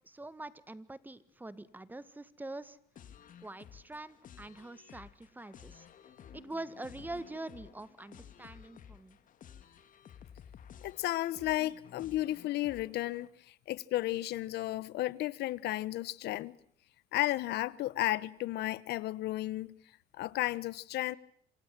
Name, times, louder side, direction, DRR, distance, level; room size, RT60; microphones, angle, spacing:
voice 1, 0.0-2.8 3.4-5.9 6.3-9.2, right 2 dB, 10° right, 1.7 m, -44 dB
sound 1, 3.0-13.3, left 8 dB, 50° left, 2.7 m, -54 dB
voice 2, 10.8-16.5 17.1-19.8 20.1-21.2, left 16 dB, 80° left, 1.2 m, -33 dB
27.5 x 27.0 x 7.6 m
cardioid pair, 110°, 17 cm